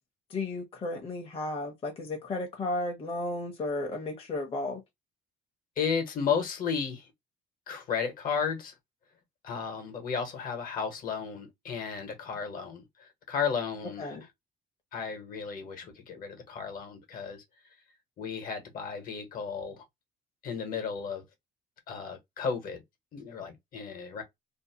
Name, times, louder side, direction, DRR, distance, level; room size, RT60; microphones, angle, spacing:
voice 1, 0.3-4.8 14.0-14.2, left 2 dB, 35° left, 0.8 m, -34 dB
voice 2, 5.8-7.1 7.7-8.7 9.4-14.2 14.9-17.4 18.2-19.8 20.4-21.2 21.9-22.8 23.1-24.2, left 6 dB, 55° left, 1.1 m, -33 dB
2.7 x 2.1 x 2.8 m
cardioid pair, 110°, 17 cm